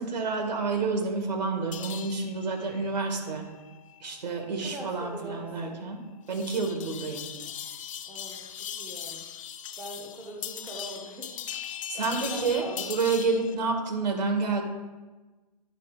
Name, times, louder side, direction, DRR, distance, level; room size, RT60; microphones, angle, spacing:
voice 1, 0.0-3.4 4.0-6.0 6.3-7.3 11.9-14.6, right 4 dB, 85° right, 4 dB, 2.0 m, -29 dB
sound 1, 1.7-13.5, left 9 dB, 50° left, 0.5 m, -40 dB
voice 2, 4.5-5.8 8.1-9.2 9.8-11.4 12.0-12.9 14.0-14.1, right 1 dB, 5° right, 0 dB, 0.8 m, -42 dB
10.5 x 4.3 x 4.9 m, 1.2 s
hypercardioid pair, 170°, 21 cm